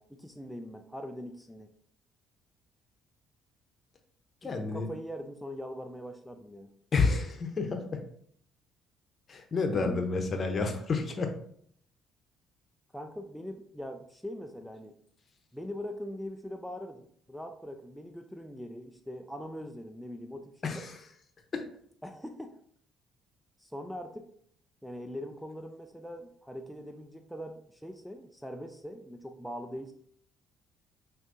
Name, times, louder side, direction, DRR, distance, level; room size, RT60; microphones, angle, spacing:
voice 1, 0.0-1.7 4.4-6.7 9.7-10.0 12.9-15.0 15.5-20.9 22.0-22.5 23.6-24.3 24.8-29.9, equal, ahead, 4 dB, 0.4 m, -42 dB
voice 2, 4.4-4.9 6.9-8.0 9.3-11.3 20.6-21.0 21.5-21.6, left 4 dB, 45° left, 5 dB, 0.8 m, -30 dB
5.9 x 2.7 x 2.6 m, 0.62 s
hypercardioid pair, 60°, 0 cm